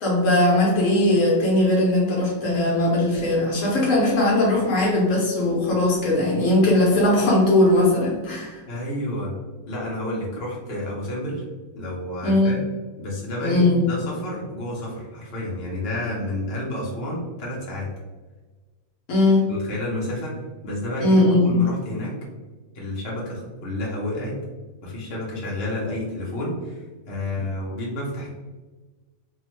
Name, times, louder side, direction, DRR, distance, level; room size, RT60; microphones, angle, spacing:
voice 1, 0.0-8.6 12.2-12.6 13.4-13.8 19.1-19.5 21.0-21.6, left 1 dB, 75° left, -3 dB, 1.1 m, -19 dB
voice 2, 8.7-9.3 9.7-11.4 11.8-12.6 13.0-17.9 19.5-20.4 20.6-22.2 22.7-24.4 24.8-28.3, left 1 dB, 55° left, -4 dB, 0.9 m, -30 dB
2.8 x 2.1 x 3.0 m, 1.3 s
omnidirectional pair, 1.4 m